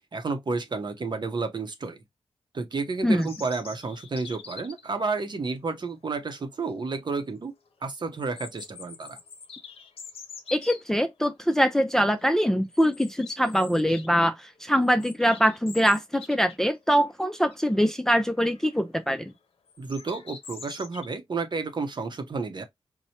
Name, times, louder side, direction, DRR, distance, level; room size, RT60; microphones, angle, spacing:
voice 1, 0.1-2.0 2.5-7.5 7.8-9.2 19.8-22.6, right 4 dB, 50° right, 0.8 m, -31 dB
sound 1, 3.2-4.9 6.4-6.5 6.9-7.0 8.1-10.8 11.5-11.8 12.1-12.2 12.7-14.1 14.4-16.7 17.0-17.1 17.5-18.0 18.4-18.8 19.7-21.1, left 5 dB, 75° left, 0.7 m, -44 dB
voice 2, 10.5-19.3, equal, 5° left, 0.4 m, -23 dB
4.3 x 2.1 x 2.8 m
wide cardioid pair, 85°, 10 cm